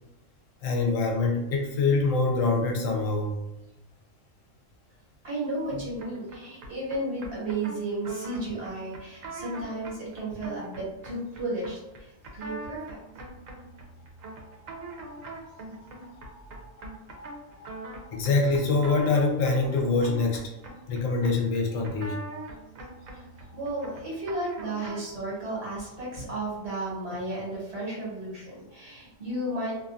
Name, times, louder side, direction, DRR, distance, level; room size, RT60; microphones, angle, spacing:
voice 1, 0.6-3.3 14.9-15.2 16.2-16.3 16.5-17.3 17.6-17.7 18.0-22.5, left 3 dB, 85° left, 1 dB, 1.0 m, -26 dB
voice 2, 5.2-13.0 23.1-23.2 23.5-29.8, right 2 dB, 55° right, -6 dB, 1.3 m, -33 dB
sound 1, 6.0-25.2, right 2 dB, 85° right, 1.0 m, -43 dB
2.6 x 2.2 x 2.5 m, 0.93 s
omnidirectional pair, 1.4 m